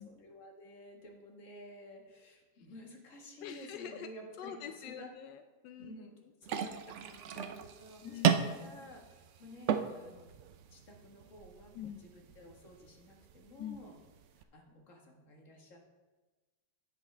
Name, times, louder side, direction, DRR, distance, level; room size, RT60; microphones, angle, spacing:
voice 1, 0.0-5.1 5.8-10.3 10.7-14.0 14.4-15.8, equal, 50° left, 0 dB, 1.9 m, -53 dB
voice 2, 3.4-4.1 4.4-6.0 8.0-8.4 11.7-12.0 13.6-13.8, left 9 dB, 90° left, 8 dB, 1.2 m, -44 dB
sound 1, 6.4-14.4, right 8 dB, 70° right, 0.7 m, -36 dB
16.5 x 5.7 x 3.3 m, 1.2 s
omnidirectional pair, 1.8 m